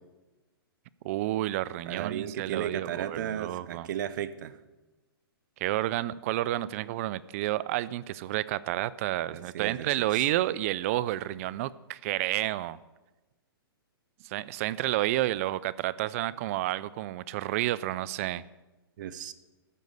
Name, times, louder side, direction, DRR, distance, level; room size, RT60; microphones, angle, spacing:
voice 1, 1.0-3.9 5.6-12.8 14.2-18.4, right 15 dB, 35° right, 19 dB, 0.4 m, -30 dB
voice 2, 1.9-4.6 9.3-10.2 19.0-19.3, right 10 dB, 50° right, 15 dB, 0.8 m, -35 dB
13.5 x 5.3 x 8.1 m, 1.1 s
hypercardioid pair, 140°, 13 cm